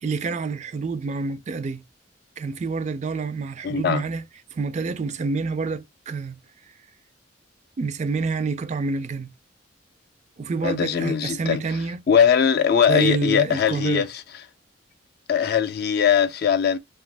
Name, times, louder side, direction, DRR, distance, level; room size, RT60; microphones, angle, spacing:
voice 1, 0.0-1.8 2.4-4.2 4.5-6.4 7.8-9.3 10.4-12.0 12.9-14.1, right 4 dB, 35° right, 0.3 m, -27 dB
voice 2, 3.6-4.0 10.6-11.8 12.1-14.2 15.3-16.8, left 7 dB, 50° left, 0.3 m, -20 dB
2.8 x 2.4 x 3.2 m
head